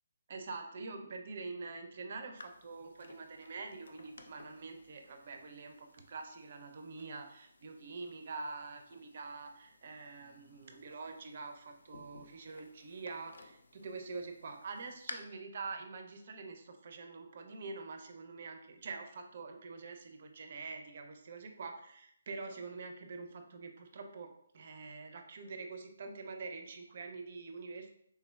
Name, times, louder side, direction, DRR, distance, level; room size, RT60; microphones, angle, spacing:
voice 1, 0.3-27.9, right 4 dB, 50° right, 5 dB, 0.4 m, -45 dB
sound 1, 2.4-15.1, left 3 dB, 80° left, 0.3 m, -56 dB
3.3 x 2.1 x 2.2 m, 0.70 s
hypercardioid pair, 150°, 0 cm